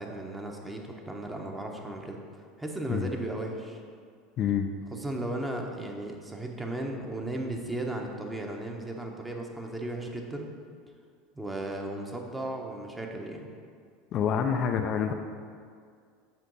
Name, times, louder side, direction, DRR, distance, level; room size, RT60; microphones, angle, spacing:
voice 1, 0.0-2.2 2.6-3.8 4.9-10.5 11.3-13.5, right 1 dB, 10° right, 1 dB, 1.1 m, -35 dB
voice 2, 4.4-4.7 14.1-15.1, left 7 dB, 45° left, 5 dB, 0.4 m, -27 dB
7.4 x 6.2 x 4.1 m, 2.2 s
figure-of-eight pair, 75°, 0 cm